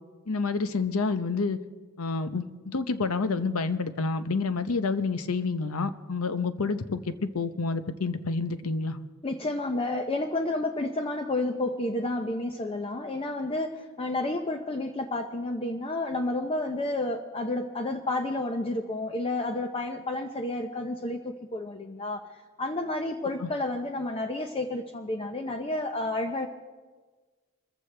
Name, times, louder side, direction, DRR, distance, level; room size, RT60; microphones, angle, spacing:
voice 1, 0.3-1.6 2.0-9.0 23.4-23.5, left 4 dB, 80° left, 11 dB, 0.8 m, -29 dB
voice 2, 9.2-22.2 22.6-26.5, left 2 dB, 25° left, 5 dB, 0.6 m, -30 dB
25.5 x 14.5 x 3.3 m, 1.4 s
head